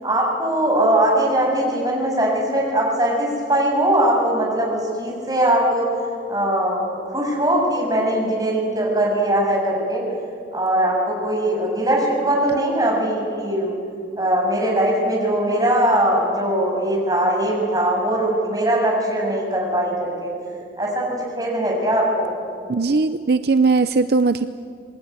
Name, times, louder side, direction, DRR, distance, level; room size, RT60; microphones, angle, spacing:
voice 1, 0.0-5.9 6.3-10.0 10.5-13.7 14.2-20.3 20.8-22.3, right 1 dB, 20° right, -2 dB, 7.0 m, -20 dB
voice 2, 22.7-24.5, right 4 dB, 60° right, 11 dB, 0.6 m, -18 dB
27.0 x 20.0 x 9.7 m, 2.4 s
head